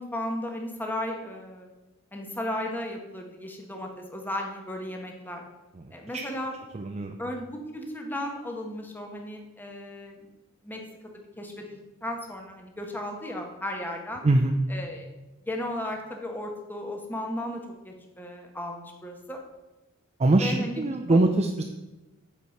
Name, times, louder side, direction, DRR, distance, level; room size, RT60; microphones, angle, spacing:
voice 1, 0.0-1.7 2.1-5.4 5.9-6.6 7.2-10.3 10.6-10.8 11.4-14.2 14.7-15.1 15.5-19.4 20.4-20.8 21.1-21.2, left 1 dB, 10° left, 2 dB, 1.1 m, -35 dB
voice 2, 5.7-6.3 6.7-7.2 14.2-14.6 20.2-21.6, right 2 dB, 30° right, 4 dB, 0.4 m, -23 dB
8.1 x 4.9 x 5.7 m, 1.1 s
head